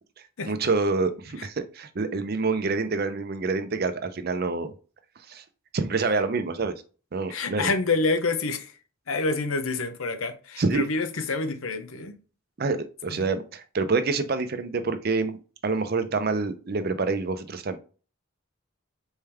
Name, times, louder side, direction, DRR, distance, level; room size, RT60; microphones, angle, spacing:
voice 1, 0.5-4.7 5.3-5.4 5.7-6.7 7.1-7.7 10.6-10.9 12.6-17.8, right 3 dB, 45° right, 0.5 m, -27 dB
voice 2, 7.3-8.7 9.1-12.1 13.1-13.2, left 3 dB, 70° left, 0.7 m, -27 dB
4.4 x 3.5 x 3.4 m
head